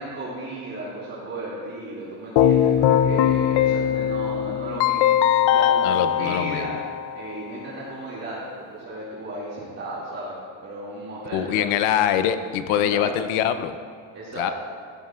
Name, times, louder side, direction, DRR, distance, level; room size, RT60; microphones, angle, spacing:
voice 1, 0.0-5.1 5.4-6.7 7.1-10.4 10.6-11.6 12.7-13.2 14.1-14.5, right 2 dB, 30° right, -9 dB, 2.4 m, -35 dB
Keyboard (musical), 2.4-7.3, left 10 dB, 55° left, 0.5 m, -20 dB
voice 2, 5.8-6.7 11.3-13.7 14.4-14.5, left 10 dB, 90° left, 10 dB, 0.8 m, -23 dB
15.0 x 13.0 x 2.4 m, 2.1 s
cardioid pair, 155°, 48 cm